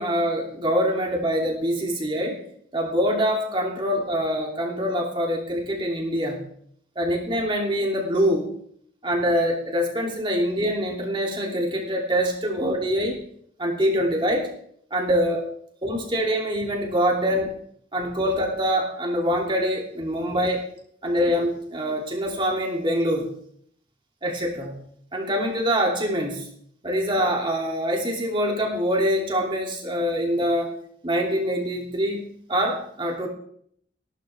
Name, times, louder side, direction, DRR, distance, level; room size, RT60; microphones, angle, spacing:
voice 1, 0.0-2.4 2.7-6.4 7.0-8.5 9.0-13.2 13.6-14.5 14.9-15.4 15.8-17.5 17.9-20.6 21.0-23.3 24.2-24.7 25.1-26.5 26.8-30.7 31.0-33.3, equal, 25° right, -1 dB, 2.8 m, -24 dB
17.5 x 12.5 x 3.5 m, 0.67 s
head